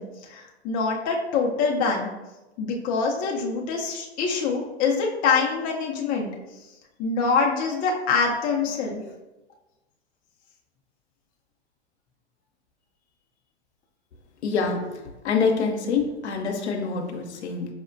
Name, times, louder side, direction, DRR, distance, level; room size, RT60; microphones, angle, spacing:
voice 1, 0.0-2.1 2.6-6.3 7.0-9.0, left 4 dB, 25° left, -1 dB, 0.5 m, -25 dB
voice 2, 14.4-15.0 15.2-17.7, left 5 dB, 80° left, 3 dB, 0.7 m, -25 dB
4.9 x 2.1 x 2.5 m, 1.0 s
hypercardioid pair, 115°, 33 cm